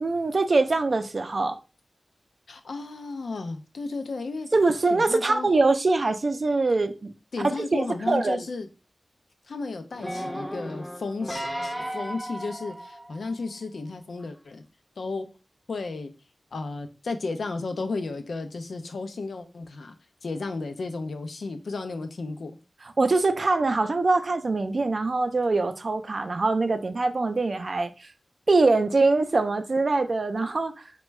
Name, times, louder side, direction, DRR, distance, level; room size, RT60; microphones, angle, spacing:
voice 1, 0.0-1.6 4.5-7.1 7.6-8.4 23.0-27.9 28.5-30.7, right 3 dB, 60° right, 8 dB, 0.4 m, -23 dB
voice 2, 2.5-4.5 4.9-5.5 7.3-8.7 9.5-14.6 15.0-15.3 15.7-16.1 16.5-20.0 20.2-22.6, left 3 dB, 85° left, 7 dB, 0.4 m, -33 dB
sound 1, 9.9-13.4 14.1-14.2, equal, 5° left, 0.5 m, -35 dB
3.3 x 2.2 x 3.1 m, 0.32 s
cardioid pair, 50°, 0 cm